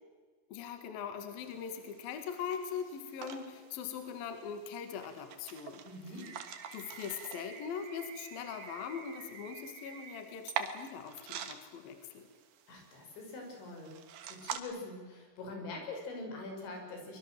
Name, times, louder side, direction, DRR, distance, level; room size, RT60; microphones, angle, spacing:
voice 1, 0.5-5.8 6.7-12.3, left 7 dB, 60° left, 7 dB, 3.4 m, -41 dB
sound 1, 1.4-14.6, right 8 dB, 60° right, 2.6 m, -46 dB
voice 2, 5.8-6.3 12.7-13.9 14.3-17.2, left 2 dB, 90° left, 2 dB, 7.8 m, -44 dB
sound 2, 6.2-10.2, right 7 dB, 85° right, 5.1 m, -50 dB
24.0 x 23.0 x 7.6 m, 1.5 s
omnidirectional pair, 5.1 m